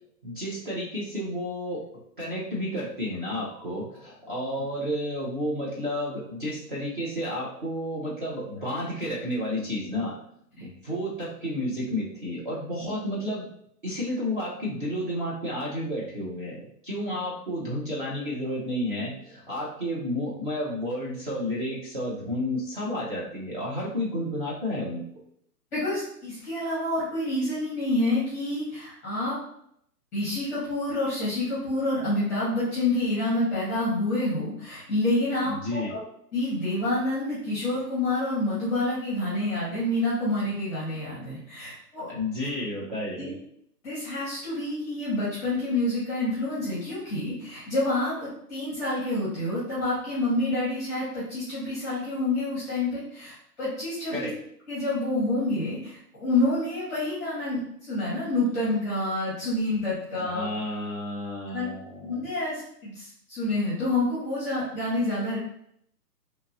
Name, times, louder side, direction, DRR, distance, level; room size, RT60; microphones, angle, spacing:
voice 1, 0.2-1.8 2.2-10.2 10.6-13.5 13.8-25.0 35.4-35.9 42.1-43.3 54.1-54.3 60.1-62.2, left 1 dB, 35° right, -7 dB, 0.6 m, -31 dB
voice 2, 25.7-29.4 30.1-36.0 36.3-42.1 43.2-43.3 43.8-54.3 54.7-60.5 61.5-61.7 62.0-65.4, left 2 dB, 10° left, -9 dB, 0.7 m, -28 dB
2.7 x 2.5 x 2.6 m, 0.70 s
hypercardioid pair, 165°, 48 cm